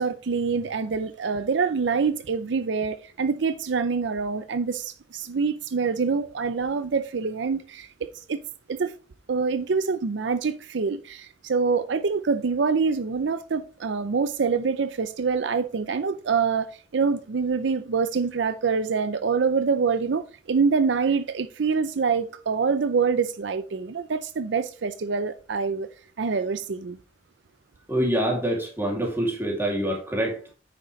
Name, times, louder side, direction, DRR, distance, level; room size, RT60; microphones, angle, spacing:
voice 1, 0.0-8.4 8.7-8.9 9.3-25.9 26.2-27.0, right 5 dB, 75° right, 0.5 m, -25 dB
voice 2, 27.9-30.5, right 1 dB, 10° right, 2.5 m, -26 dB
9.2 x 6.6 x 3.1 m
head